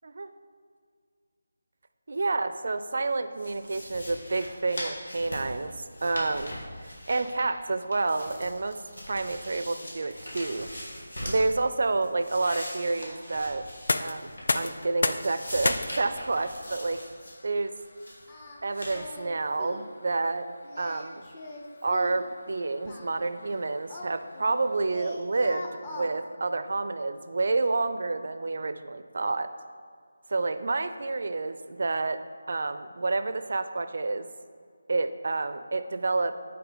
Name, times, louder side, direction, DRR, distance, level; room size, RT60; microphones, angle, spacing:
voice 1, 2.1-5.7 6.0-6.6 7.1-8.8 9.1-10.7 11.2-13.6 14.0-17.0 17.4-17.7 18.6-20.5 20.8-21.2 21.8-29.5 30.3-32.2 32.5-34.3 34.9-36.4, right 3 dB, 60° right, 11 dB, 0.4 m, -29 dB
sound 1, 3.4-7.7 7.9-11.5 11.9-14.8 15.1-17.3 17.8-18.2 18.7-19.0, equal, 80° left, 1.5 m, -41 dB
sound 2, 13.6-25.4, left 3 dB, 60° left, 0.3 m, -36 dB
Singing, 18.3-18.6 18.9-19.3 19.6-19.9 20.6-22.2 22.9-24.6 24.9-26.1, left 2 dB, 25° left, 0.7 m, -41 dB
5.8 x 4.7 x 3.9 m, 2.1 s
figure-of-eight pair, 160°, 0 cm